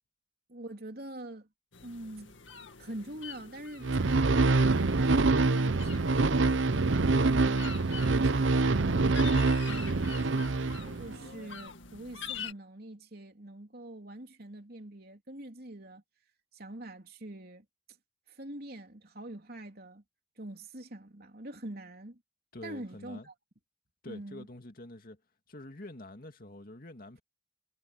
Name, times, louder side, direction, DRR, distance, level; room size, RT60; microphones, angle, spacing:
voice 1, 0.5-1.5 1.8-2.4 2.8-4.3 4.7-6.7 7.2-10.6 11.0-16.0 16.5-17.7 18.3-20.0 20.4-22.2 22.6-23.3 24.1-24.5, right 1 dB, 50° right, 3.4 m, -44 dB
sound 1, 1.7-12.5, left 6 dB, 75° left, 2.1 m, -46 dB
sound 2, 3.8-11.3, right 3 dB, 75° right, 0.8 m, -25 dB
voice 2, 22.5-23.3 24.0-25.2 25.5-27.2, left 1 dB, 45° left, 2.4 m, -46 dB
head